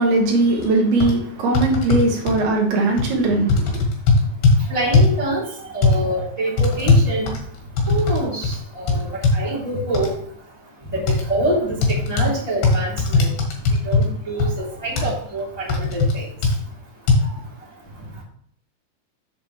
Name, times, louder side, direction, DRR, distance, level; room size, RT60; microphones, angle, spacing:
voice 1, 0.0-3.8, right 2 dB, 70° right, 0 dB, 3.5 m, -19 dB
sound 1, 0.6-0.7 1.0-1.1 1.6-2.4 3.0-3.1 3.5-4.6 4.9-5.2 5.8-6.0 6.6-8.2 8.4-8.6 8.9-9.4 9.9-10.1 11.1-11.2 11.8-12.3 12.6-14.1 14.4-14.5 15.0-15.1 15.7-16.1 16.4-16.6 17.1-17.2, left 3 dB, 65° left, 3.6 m, -17 dB
voice 2, 4.7-5.5 5.7-7.4 7.9-10.1 10.9-13.3 13.8-16.3, right 1 dB, 10° left, -6 dB, 2.0 m, -25 dB
8.0 x 7.3 x 3.2 m, 0.62 s
omnidirectional pair, 4.8 m